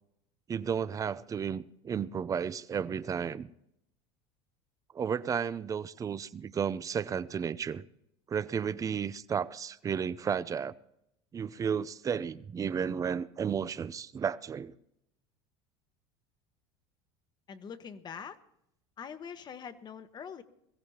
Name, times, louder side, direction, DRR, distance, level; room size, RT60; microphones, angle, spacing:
voice 1, 0.5-3.5 4.9-7.8 8.3-10.7 11.3-14.7, right 7 dB, 25° right, 0.6 m, -33 dB
voice 2, 17.5-18.4 19.0-20.4, left 7 dB, 35° left, 1.2 m, -43 dB
22.0 x 15.5 x 2.9 m
supercardioid pair, 110°, 13 cm